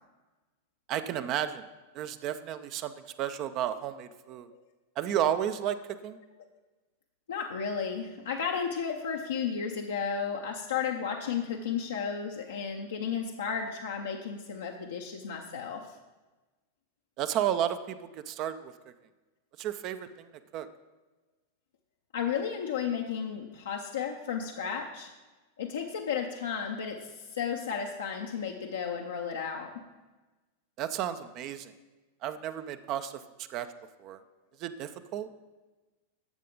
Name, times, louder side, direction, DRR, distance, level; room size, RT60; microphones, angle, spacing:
voice 1, 0.9-1.6 1.9-2.9 3.2-4.5 5.0-5.8 6.0-6.2 17.2-18.7 19.6-20.3 20.5-20.7 30.8-31.7 32.2-33.2 33.5-33.7 34.0-34.2 34.6-35.3, right 10 dB, 40° right, 10 dB, 0.5 m, -32 dB
voice 2, 7.3-16.0 22.1-25.1 25.6-29.8, left 7 dB, 65° left, 1 dB, 0.8 m, -33 dB
12.0 x 7.4 x 3.9 m, 1.2 s
figure-of-eight pair, 90°, 0 cm